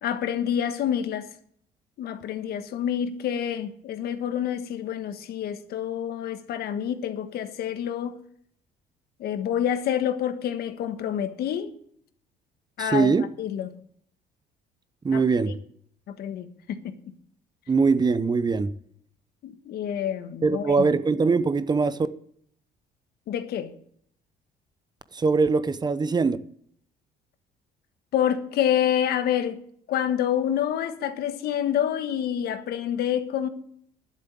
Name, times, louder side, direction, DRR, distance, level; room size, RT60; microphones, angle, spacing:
voice 1, 0.0-1.3 2.0-8.2 9.2-11.7 12.8-13.1 13.4-13.7 15.1-15.2 16.1-16.9 19.4-20.9 23.3-23.7 28.1-29.6 29.9-33.5, left 9 dB, 70° left, 1.4 m, -27 dB
voice 2, 12.8-13.3 15.0-15.5 17.7-18.7 20.4-22.0 25.1-26.4, right 4 dB, 25° right, 0.7 m, -22 dB
11.5 x 7.4 x 8.4 m
cardioid pair, 110°, 17 cm